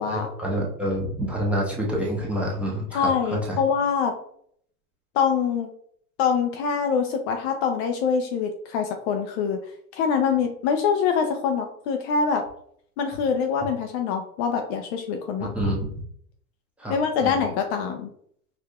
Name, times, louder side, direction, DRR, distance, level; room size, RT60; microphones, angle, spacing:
voice 1, 0.1-3.6 15.4-15.9 16.8-16.9 17.2-17.3, equal, 5° right, -4 dB, 0.8 m, -27 dB
voice 2, 2.9-4.1 5.1-5.7 6.2-9.6 9.9-12.4 13.0-15.7 16.9-18.1, left 6 dB, 45° left, 5 dB, 0.5 m, -24 dB
4.7 x 2.5 x 2.3 m, 0.64 s
hypercardioid pair, 115°, 47 cm